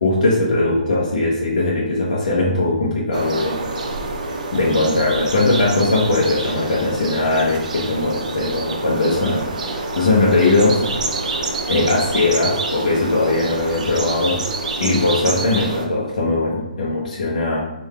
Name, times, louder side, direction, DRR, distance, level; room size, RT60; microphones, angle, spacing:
voice 1, 0.0-3.6 4.3-9.4 9.7-10.8 11.7-14.4 14.8-17.6, left 2 dB, 70° left, -5 dB, 0.9 m, -19 dB
sound 1, 3.1-15.9, right 3 dB, 65° right, 0.7 m, -27 dB
3.8 x 2.6 x 4.7 m, 0.99 s
hypercardioid pair, 155°, 4 cm